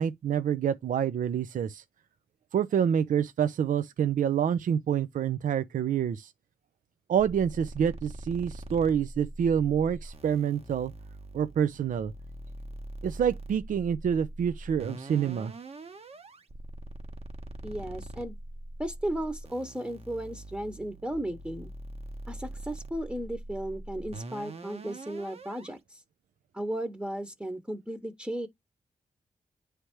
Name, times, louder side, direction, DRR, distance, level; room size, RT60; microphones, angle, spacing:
voice 1, 0.0-1.8 2.5-6.3 7.1-10.9 11.3-12.1 13.0-15.5, right 8 dB, 65° right, 0.5 m, -27 dB
sound 1, 7.2-25.8, right 1 dB, 45° right, 1.0 m, -43 dB
voice 2, 17.6-18.4 18.8-21.7 22.3-26.0 26.5-28.5, right 1 dB, 5° right, 1.0 m, -35 dB
9.7 x 3.3 x 3.0 m
supercardioid pair, 45°, 14 cm